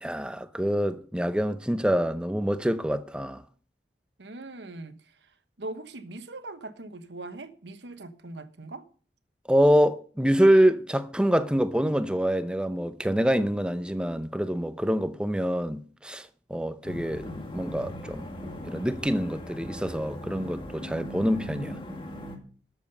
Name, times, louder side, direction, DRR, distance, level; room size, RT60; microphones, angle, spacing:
voice 1, 0.0-3.4 9.5-17.3 17.5-18.3 18.6-21.7, equal, 5° right, 0.6 m, -25 dB
voice 2, 4.2-8.9, right 2 dB, 85° right, 1.2 m, -41 dB
sound 1, 16.8-22.4, equal, 30° left, 2.0 m, -39 dB
12.5 x 7.3 x 5.5 m
head